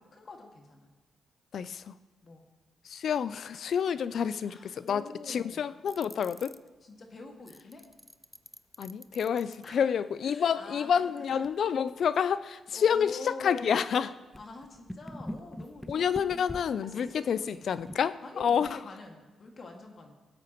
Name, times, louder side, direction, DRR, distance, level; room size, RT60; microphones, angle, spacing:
voice 1, 0.1-0.9 2.2-2.4 4.4-5.8 6.8-7.9 9.6-9.9 10.2-11.5 12.7-14.0 14.4-16.5 16.8-17.7 18.2-20.1, left 3 dB, 50° left, 2 dB, 2.1 m, -45 dB
voice 2, 1.5-1.9 2.8-6.5 8.8-14.1 15.9-18.8, left 7 dB, 65° left, 15 dB, 0.4 m, -29 dB
sound 1, 5.9-6.7 7.5-9.8 11.4-11.5 12.0-12.1 13.1-13.2 13.6-13.7 14.3-18.1, equal, 5° left, 0.5 m, -44 dB
18.5 x 8.3 x 3.1 m, 1.3 s
cardioid pair, 70°, 0 cm